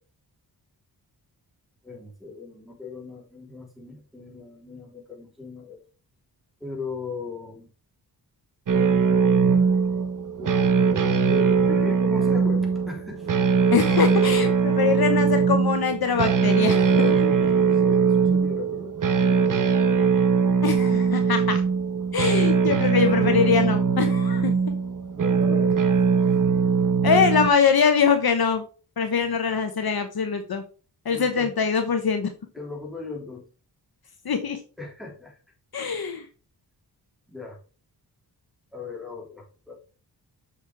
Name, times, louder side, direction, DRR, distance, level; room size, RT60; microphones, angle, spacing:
voice 1, 1.8-5.8 6.6-7.7 10.3-13.3 16.8-19.5 25.1-25.8 29.2-29.4 31.1-31.5 32.5-33.4 34.8-35.4 37.3-37.6 38.7-39.7, left 4 dB, ahead, -3 dB, 3.6 m, -37 dB
sound 1, 8.7-27.5, right 5 dB, 50° right, 0.9 m, -21 dB
voice 2, 13.7-17.1 20.6-21.6 22.1-24.5 27.0-28.6 29.0-30.6 31.0-32.3 34.2-34.6 35.7-36.2, left 6 dB, 60° left, 7 dB, 1.1 m, -23 dB
7.8 x 6.2 x 3.5 m, 0.36 s
wide cardioid pair, 100°, 42 cm